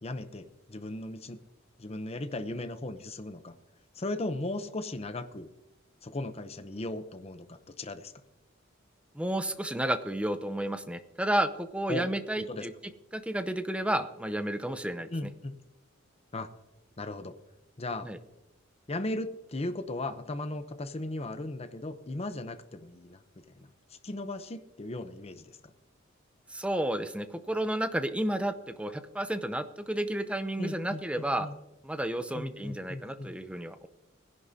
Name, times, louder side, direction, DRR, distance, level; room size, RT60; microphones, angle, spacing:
voice 1, 0.0-1.4 1.8-3.5 3.9-5.5 6.0-8.1 11.9-12.1 12.4-12.7 15.1-15.6 16.3-16.5 17.0-17.4 17.8-18.1 18.9-23.7 24.0-25.7 30.6-31.6 32.3-33.3, left 2 dB, 30° left, 10 dB, 0.7 m, -37 dB
voice 2, 9.1-12.7 13.1-15.1 18.0-18.2 26.5-31.5 31.8-33.9, right 1 dB, 5° right, 10 dB, 0.7 m, -31 dB
19.5 x 11.0 x 2.8 m, 0.97 s
head